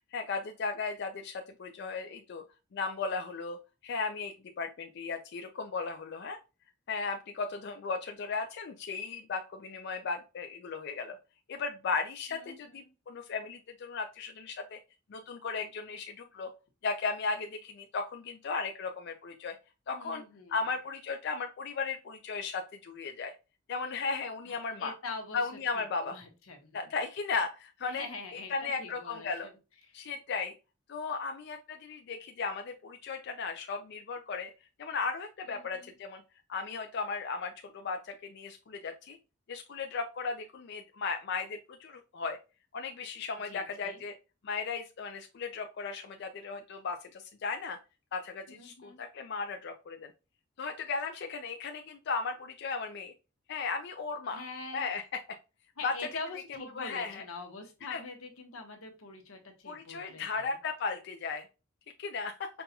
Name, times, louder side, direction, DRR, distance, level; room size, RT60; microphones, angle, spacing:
voice 1, 0.1-2.4 2.7-3.6 3.8-6.4 6.9-11.2 11.5-14.8 15.1-16.5 16.8-19.6 19.9-20.2 20.5-23.3 23.7-24.9 25.3-26.2 26.7-28.0 28.3-29.5 29.9-30.5 30.9-34.5 34.8-36.2 36.5-39.2 39.5-42.4 42.7-44.1 44.4-47.8 48.1-50.1 50.6-53.1 53.5-54.4 54.7-55.0 55.8-55.9 56.8-57.2 57.9-58.0 59.7-61.4 62.0-62.5, left 4 dB, 55° left, 5 dB, 0.4 m, -36 dB
voice 2, 12.3-12.8 19.9-20.6 24.4-25.4 25.7-26.8 27.9-29.5 29.8-30.0 35.4-35.9 43.5-44.0 48.5-49.0 54.3-54.8 55.8-60.6, left 3 dB, 90° left, 4 dB, 1.0 m, -44 dB
5.3 x 2.3 x 2.7 m, 0.29 s
head